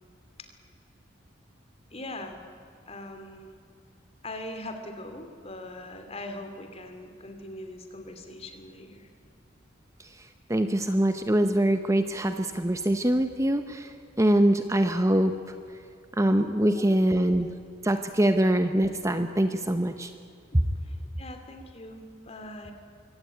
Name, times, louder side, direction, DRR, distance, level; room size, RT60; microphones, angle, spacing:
voice 1, 1.9-2.4 2.9-3.5 4.2-9.1 16.7-17.2 20.8-22.7, left 1 dB, 35° left, 6 dB, 2.7 m, -41 dB
voice 2, 10.5-15.3 16.2-17.5 17.8-20.1, right 1 dB, 15° right, 8 dB, 0.8 m, -24 dB
24.0 x 17.0 x 9.3 m, 2.4 s
head